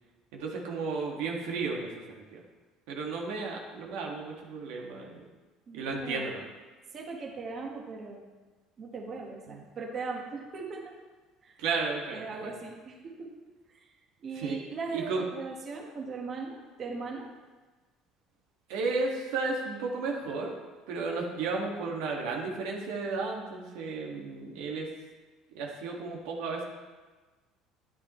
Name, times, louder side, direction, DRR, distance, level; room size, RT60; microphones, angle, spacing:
voice 1, 0.3-1.9 2.3-2.4 2.9-5.3 5.7-6.4 9.5-9.6 11.6-12.5 14.3-14.6 14.9-15.3 18.7-20.5 20.9-24.9 25.5-26.6, right 4 dB, 85° right, -1 dB, 1.9 m, -33 dB
voice 2, 5.7-6.2 6.9-8.2 8.8-10.9 11.4-11.6 12.1-13.3 13.7-13.9 14.2-17.3, right 4 dB, 35° right, -1 dB, 1.4 m, -39 dB
12.0 x 10.0 x 3.2 m, 1.3 s
cardioid pair, 150°, 0 cm